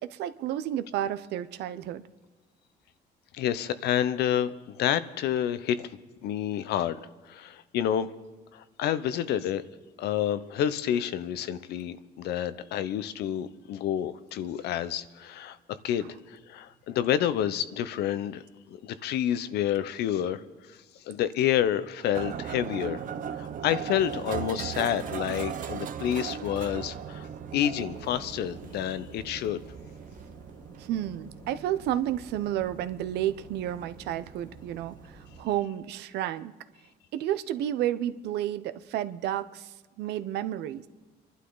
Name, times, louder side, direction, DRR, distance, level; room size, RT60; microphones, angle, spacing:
voice 1, 0.0-2.0 30.8-36.5 37.1-40.9, right 12 dB, 80° right, 13 dB, 0.7 m, -31 dB
voice 2, 3.3-5.9 6.2-7.0 7.3-8.1 8.5-9.6 10.0-15.6 15.8-18.4 18.7-20.4 20.7-20.8 21.0-23.0 23.4-29.6, left 10 dB, 75° left, 14 dB, 0.8 m, -29 dB
sound 1, 22.1-35.4, right 8 dB, 50° right, 0.8 m, -39 dB
sound 2, 26.6-35.6, left 2 dB, 20° left, 1.6 m, -54 dB
27.0 x 12.0 x 3.9 m, 1.3 s
cardioid pair, 110°, 17 cm